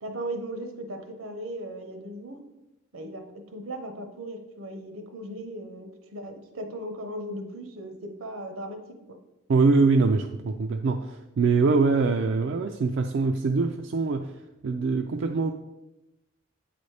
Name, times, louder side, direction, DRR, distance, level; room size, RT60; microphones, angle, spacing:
voice 1, 0.0-2.4 2.9-8.8 9.1-9.2, right 1 dB, 80° right, 5 dB, 0.9 m, -37 dB
voice 2, 9.5-14.3 14.6-15.5, right 4 dB, 60° right, 4 dB, 0.3 m, -23 dB
8.4 x 4.1 x 3.3 m, 0.94 s
head